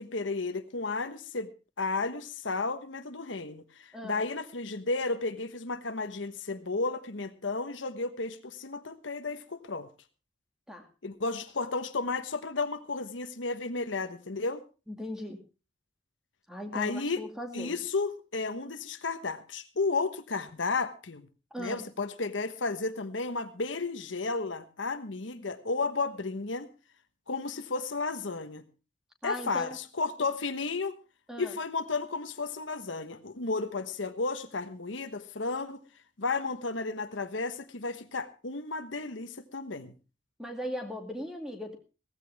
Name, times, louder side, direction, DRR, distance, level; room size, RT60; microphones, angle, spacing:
voice 1, 0.0-1.5 1.8-9.9 11.0-14.6 16.7-17.2 17.5-21.3 21.6-26.7 27.3-28.6 29.2-31.0 31.4-35.8 36.2-39.9, left 3 dB, 85° left, 10 dB, 1.2 m, -33 dB
voice 2, 3.9-4.2 10.7-10.9 14.9-15.4 16.5-17.7 21.5-21.9 29.2-29.8 31.3-31.5 40.4-41.8, equal, 5° right, 3 dB, 2.3 m, -38 dB
16.5 x 15.0 x 3.5 m, 0.32 s
head